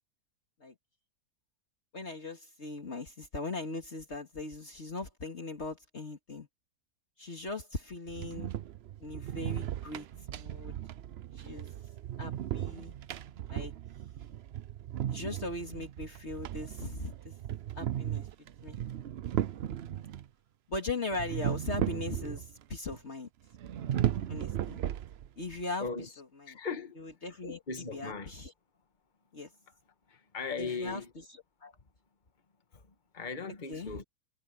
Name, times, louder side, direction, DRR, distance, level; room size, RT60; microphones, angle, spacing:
voice 1, 1.9-6.5 7.2-8.5 9.0-10.1 10.3-10.7 11.4-11.7 12.2-13.0 13.5-13.7 15.1-17.3 17.7-18.3 18.6-18.8 20.7-23.3 24.3-24.8 25.4-25.9 26.5-26.6 27.0-27.6 27.9-28.5 29.3-29.5 30.6-31.0 31.6-31.7 33.7-34.0, left 2 dB, 45° left, 2.6 m, -39 dB
sound 1, 8.1-20.3 21.1-22.6 22.9-23.0 23.5-25.5, right 11 dB, 60° right, 0.7 m, -36 dB
voice 2, 25.8-26.1 26.5-27.0 27.7-28.3 30.1-31.1 32.7-32.9 33.1-34.0, left 4 dB, 30° left, 1.7 m, -38 dB
omnidirectional pair, 1.6 m